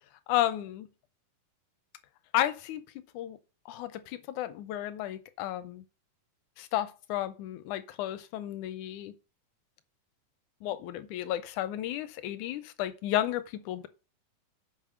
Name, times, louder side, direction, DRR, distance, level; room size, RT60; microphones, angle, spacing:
voice 1, 0.3-0.9 2.3-2.8 3.1-3.4 3.7-5.8 6.6-9.1 10.6-13.9, left 13 dB, 80° left, 1.8 m, -32 dB
7.3 x 5.3 x 6.2 m
omnidirectional pair, 4.0 m